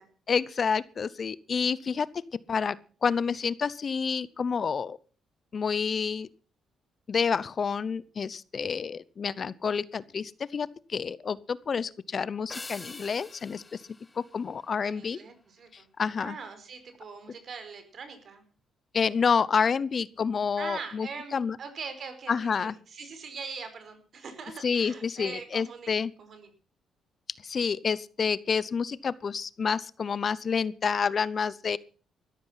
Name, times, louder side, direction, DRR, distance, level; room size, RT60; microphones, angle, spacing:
voice 1, 0.3-2.2 2.5-2.8 3.0-5.0 5.5-6.3 7.1-13.8 14.2-15.2 15.7-16.4 18.9-21.6 22.3-22.7 24.6-26.1 27.4-31.8, left 6 dB, 45° left, 20 dB, 0.7 m, -29 dB
sound 1, 12.5-15.1, left 3 dB, 20° left, 1.2 m, -46 dB
voice 2, 14.8-15.9 16.2-18.4 20.6-25.9 26.2-26.5, right 5 dB, 55° right, 9 dB, 4.9 m, -42 dB
14.0 x 13.5 x 5.8 m, 0.39 s
cardioid pair, 90°, 0 cm